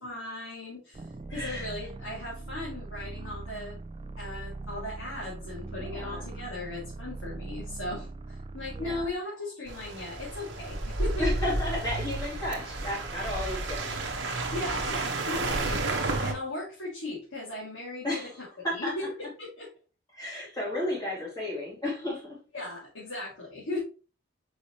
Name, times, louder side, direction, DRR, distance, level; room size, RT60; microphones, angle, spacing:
voice 1, 0.0-3.8 4.2-11.3 14.5-15.9 16.2-18.1 18.7-19.7 22.5-23.8, left 2 dB, 80° left, 2.5 m, -37 dB
sound 1, 0.9-9.2, right 2 dB, 25° right, 0.4 m, -40 dB
voice 2, 1.3-1.7 5.8-6.3 8.7-9.1 11.2-14.3 15.2-15.6 18.0-19.1 20.1-22.4, left 1 dB, 20° left, 2.8 m, -34 dB
sound 2, 9.7-16.3, right 2 dB, 60° right, 1.3 m, -31 dB
6.3 x 4.9 x 3.1 m
head